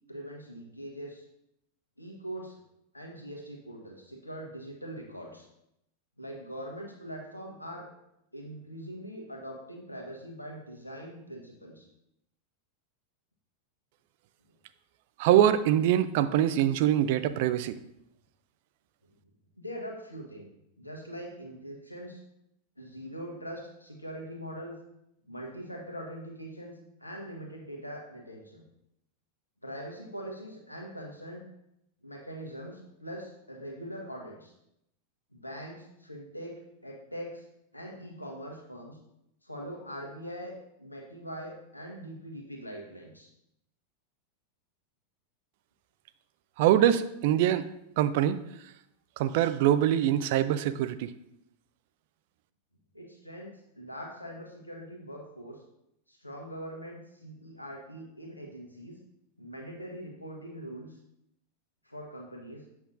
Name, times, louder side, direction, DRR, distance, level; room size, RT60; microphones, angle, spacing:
voice 1, 0.1-1.2 2.0-2.6 2.9-5.5 6.2-7.9 8.3-11.9 19.6-20.5 20.8-22.2 22.8-24.8 25.3-28.6 29.6-31.4 32.0-34.5 35.3-37.4 37.7-39.0 39.4-40.5 40.8-43.3 52.9-55.6 56.1-59.0 59.4-61.0 61.8-62.6, equal, 85° left, 0 dB, 1.4 m, -42 dB
voice 2, 15.2-17.8 46.6-47.7 48.0-48.4 49.2-51.1, right 11 dB, 50° right, 12 dB, 0.4 m, -24 dB
7.8 x 6.0 x 2.5 m, 0.80 s
figure-of-eight pair, 90°, 0 cm